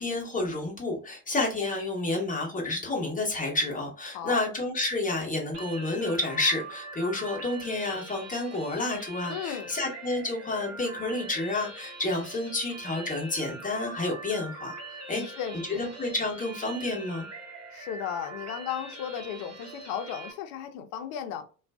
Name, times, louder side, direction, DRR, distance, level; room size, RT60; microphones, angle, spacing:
voice 1, 0.0-14.8 15.1-15.2 15.7-17.3, left 2 dB, 15° left, 0.9 m, -30 dB
sound 1, 5.5-20.3, right 2 dB, 30° right, 1.0 m, -43 dB
voice 2, 9.3-9.8 15.1-15.9 17.7-21.4, left 9 dB, 45° left, 0.6 m, -35 dB
2.4 x 2.3 x 2.2 m
figure-of-eight pair, 65°, 49 cm